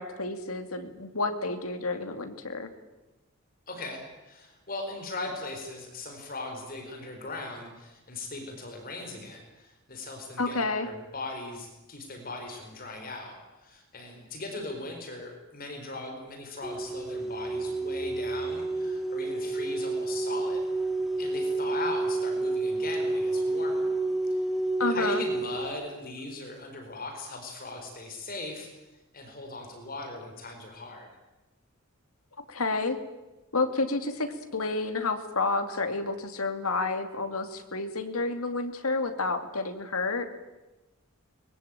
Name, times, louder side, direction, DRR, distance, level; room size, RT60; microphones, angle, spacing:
voice 1, 0.0-2.7 10.4-10.9 24.8-25.2 32.5-33.0 33.5-40.3, left 3 dB, 85° left, 8 dB, 2.5 m, -30 dB
voice 2, 3.7-20.6 21.2-23.9 24.8-28.7 29.1-31.1, left 2 dB, 40° left, 4 dB, 4.3 m, -39 dB
sound 1, 16.6-25.7, right 2 dB, ahead, 1.9 m, -30 dB
23.0 x 21.5 x 8.9 m, 1.0 s
head